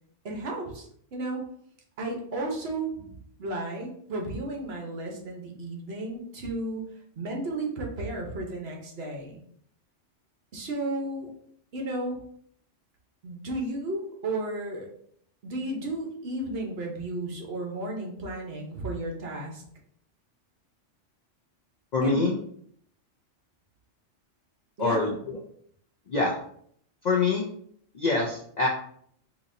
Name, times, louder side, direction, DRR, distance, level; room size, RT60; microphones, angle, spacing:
voice 1, 0.2-1.4 2.0-3.1 3.4-6.8 7.2-9.4 10.5-11.3 11.7-12.2 13.2-14.9 15.4-19.6 22.0-22.2 24.8-25.2, right 2 dB, 60° right, 0 dB, 1.0 m, -33 dB
voice 2, 21.9-22.3 24.8-25.1 26.1-26.3 27.0-27.4 27.9-28.7, left 3 dB, 60° left, -2 dB, 0.4 m, -24 dB
3.9 x 2.7 x 2.5 m, 0.65 s
omnidirectional pair, 1.2 m